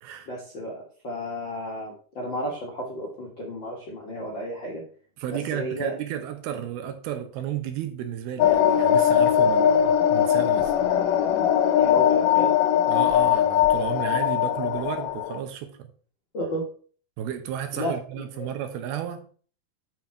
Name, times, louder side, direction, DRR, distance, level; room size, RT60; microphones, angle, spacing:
voice 1, 0.2-4.8 5.3-5.9 11.8-12.6 16.3-16.6 17.7-18.5, equal, 55° left, 1.3 m, -33 dB
voice 2, 5.2-10.7 12.9-15.9 17.2-19.3, right 10 dB, 75° right, 2.7 m, -33 dB
sound 1, 8.4-15.4, left 9 dB, 80° left, 2.5 m, -20 dB
7.5 x 6.1 x 4.3 m
omnidirectional pair, 4.7 m